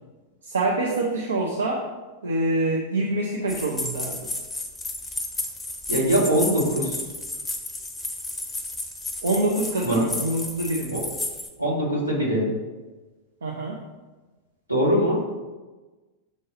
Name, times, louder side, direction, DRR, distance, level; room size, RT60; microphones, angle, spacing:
voice 1, 0.4-1.9 2.2-4.3 9.2-10.9 13.4-13.8, right 2 dB, 70° right, 0 dB, 0.6 m, -25 dB
sound 1, 3.5-11.5, left 2 dB, 10° left, 0.7 m, -32 dB
voice 2, 5.9-7.0 9.8-10.1 10.9-11.1 11.6-12.5 14.7-15.2, equal, 90° right, -4 dB, 1.6 m, -22 dB
6.3 x 3.9 x 3.9 m, 1.2 s
figure-of-eight pair, 90°, 0 cm